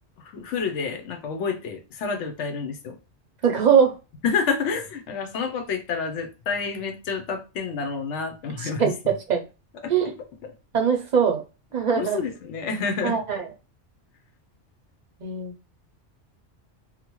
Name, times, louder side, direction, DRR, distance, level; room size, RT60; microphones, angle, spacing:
voice 1, 0.2-3.0 4.2-8.9 9.8-9.9 10.4-10.5 11.9-13.2, left 5 dB, 90° left, 1.0 m, -29 dB
voice 2, 3.4-3.9 8.6-8.9 9.3-9.4 9.9-10.1 10.7-11.4 11.7-12.2 13.0-13.5 15.2-15.5, right 7 dB, 50° right, 0.6 m, -21 dB
2.9 x 2.1 x 2.9 m
omnidirectional pair, 1.2 m